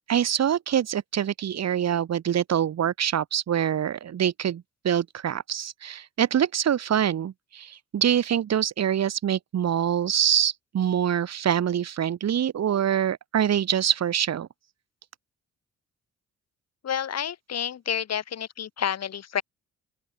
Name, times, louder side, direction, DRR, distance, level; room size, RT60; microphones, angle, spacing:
voice 1, 0.1-14.5, right 9 dB, 60° right, 3.6 m, -25 dB
voice 2, 16.8-19.4, left 9 dB, 55° left, 4.3 m, -29 dB
open air
cardioid pair, 90°, 30 cm